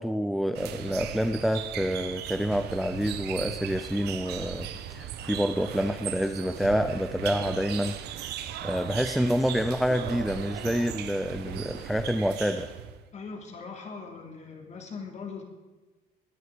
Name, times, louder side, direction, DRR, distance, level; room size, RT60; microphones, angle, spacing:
voice 1, 0.0-8.4 8.6-12.7, equal, ahead, 8 dB, 0.6 m, -28 dB
sound 1, 0.5-13.0, right 10 dB, 80° right, 1.1 m, -37 dB
voice 2, 13.1-15.4, left 5 dB, 45° left, 3 dB, 3.1 m, -40 dB
20.0 x 11.0 x 5.1 m, 1.2 s
cardioid pair, 110°, 17 cm